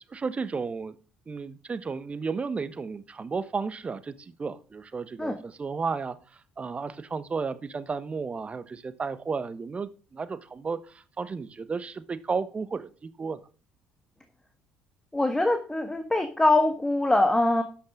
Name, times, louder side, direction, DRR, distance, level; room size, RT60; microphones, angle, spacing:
voice 1, 0.1-0.9 1.3-6.2 6.6-13.4, right 5 dB, 25° right, 13 dB, 1.2 m, -33 dB
voice 2, 15.1-17.6, left 2 dB, 10° left, 7 dB, 1.6 m, -23 dB
12.5 x 8.8 x 3.7 m, 0.37 s
figure-of-eight pair, 50°, 5 cm